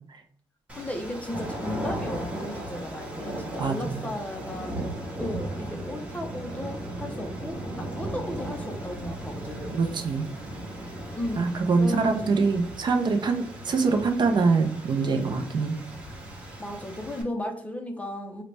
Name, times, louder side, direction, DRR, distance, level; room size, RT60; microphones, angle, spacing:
voice 1, 0.7-4.8 5.2-9.8 11.1-12.3 16.6-18.4, left 1 dB, 15° left, 4 dB, 0.4 m, -35 dB
sound 1, 0.7-17.2, right 1 dB, 10° right, 0.8 m, -37 dB
voice 2, 3.6-4.0 9.7-10.3 11.4-15.8, right 4 dB, 45° right, 5 dB, 0.4 m, -24 dB
3.9 x 2.1 x 3.2 m, 0.63 s
wide cardioid pair, 145°, 11 cm